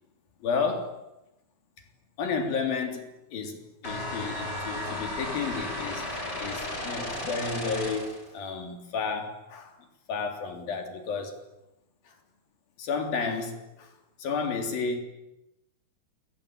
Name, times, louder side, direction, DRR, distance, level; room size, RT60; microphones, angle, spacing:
voice 1, 0.4-1.0 2.2-9.8 10.1-11.5 12.1-12.2 12.8-15.0, left 5 dB, 70° left, 5.2 m, -32 dB
sound 1, 3.8-8.3, left 1 dB, 25° left, 7.6 m, -34 dB
28.5 x 23.0 x 8.9 m
omnidirectional pair, 4.3 m